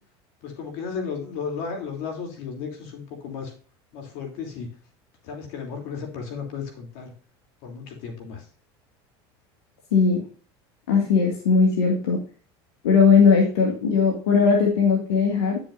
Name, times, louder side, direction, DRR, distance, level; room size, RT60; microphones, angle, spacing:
voice 1, 0.4-3.5 3.9-4.7 5.2-7.1 7.6-8.4, left 5 dB, 70° left, 2 dB, 3.1 m, -34 dB
voice 2, 9.9-10.2 10.9-12.2 12.8-15.6, left 5 dB, 90° left, -1 dB, 2.1 m, -19 dB
10.5 x 6.8 x 2.6 m, 0.41 s
supercardioid pair, 100°, 13 cm